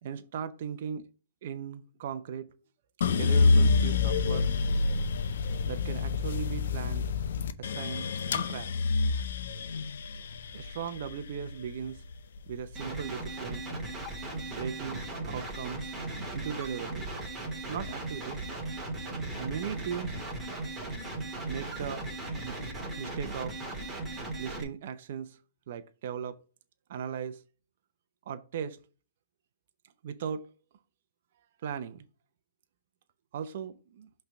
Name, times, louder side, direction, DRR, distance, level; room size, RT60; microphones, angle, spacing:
voice 1, 0.0-1.1 1.4-2.5 3.1-4.5 5.6-7.1 7.6-8.7 10.5-12.0 12.5-13.6 14.5-15.9 16.3-17.1 17.7-18.4 19.4-20.2 21.5-22.1 22.4-23.6 24.4-25.4 25.7-26.4 26.9-27.4 28.3-28.8 30.0-30.5 31.6-32.0 33.3-34.1, right 7 dB, 55° right, 0.7 m, -38 dB
sound 1, 3.0-13.2 13.7-14.4, left 4 dB, 70° left, 0.7 m, -28 dB
sound 2, 12.8-24.6, right 2 dB, 10° right, 1.8 m, -37 dB
5.8 x 3.4 x 5.8 m
hypercardioid pair, 150°, 0 cm